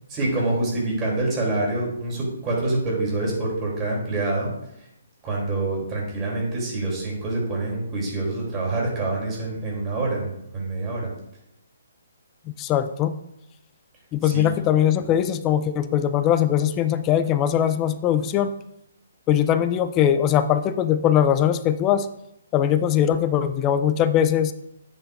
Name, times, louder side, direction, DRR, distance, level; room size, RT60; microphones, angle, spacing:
voice 1, 0.1-4.5 4.8-4.9 5.2-11.1 14.2-14.5, right 2 dB, 20° right, -3 dB, 3.3 m, -26 dB
voice 2, 12.6-13.1 14.1-18.5 19.3-22.1 22.5-24.5, left 10 dB, 20° left, 11 dB, 0.5 m, -21 dB
9.8 x 8.3 x 2.6 m, 0.80 s
hypercardioid pair, 155°, 0 cm